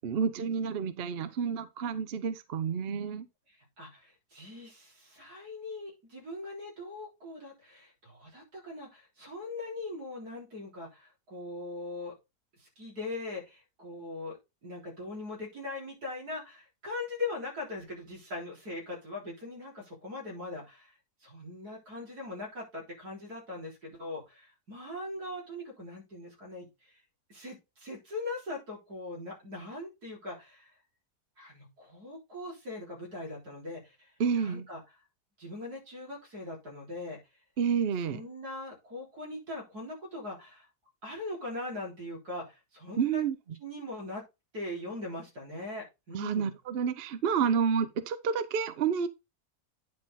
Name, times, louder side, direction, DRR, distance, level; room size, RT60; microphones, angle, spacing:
voice 1, 0.0-3.3 34.2-34.7 37.6-38.2 43.0-43.4 46.1-49.1, right 6 dB, 50° right, 0.8 m, -29 dB
voice 2, 3.5-12.1 12.6-21.0 21.2-26.9 27.3-30.7 31.4-34.8 35.4-37.2 38.1-40.7 41.0-43.2 43.6-44.2 44.5-46.5, left 2 dB, 80° right, 4.2 m, -41 dB
9.7 x 4.3 x 4.0 m
omnidirectional pair, 1.7 m